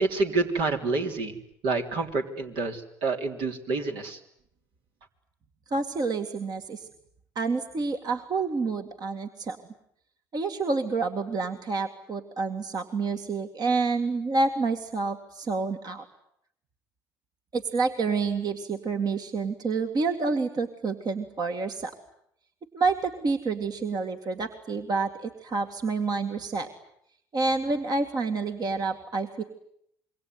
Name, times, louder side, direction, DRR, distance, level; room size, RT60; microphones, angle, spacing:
voice 1, 0.0-1.4 1.6-4.2, right 3 dB, 70° right, 3 dB, 3.6 m, -28 dB
voice 2, 5.7-6.9 7.4-9.6 10.3-16.1 17.5-21.9 22.7-26.7 27.3-29.4, right 4 dB, 45° right, 5 dB, 2.2 m, -28 dB
26.5 x 23.0 x 9.6 m, 0.73 s
hypercardioid pair, 65°, 9 cm